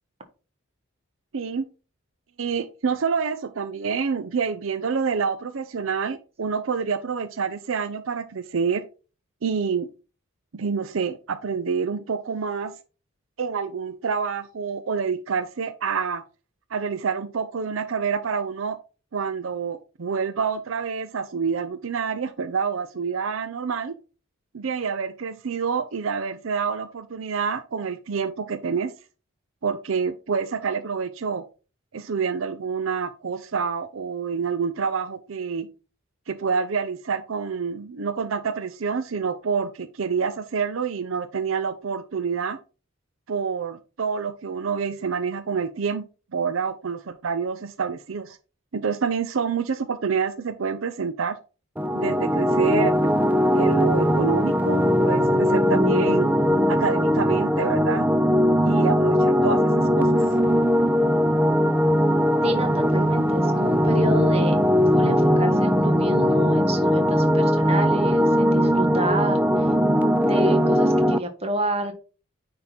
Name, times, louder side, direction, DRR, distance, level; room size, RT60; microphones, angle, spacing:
voice 1, 1.3-1.7 2.4-8.8 9.4-9.9 10.5-12.7 13.4-16.2 16.7-18.8 19.1-23.9 24.5-28.9 29.6-31.4 31.9-35.7 36.3-42.6 43.3-46.0 46.3-48.4 48.7-51.4 51.9-53.2 53.6-56.3 56.7-58.1 58.6-60.2, right 6 dB, 75° right, 10 dB, 0.6 m, -27 dB
sound 1, 51.8-71.2, equal, 10° right, 0.4 m, -20 dB
voice 2, 62.4-64.6 64.9-69.4 70.3-71.9, right 1 dB, 30° right, 6 dB, 1.3 m, -29 dB
9.5 x 3.8 x 4.4 m, 0.34 s
head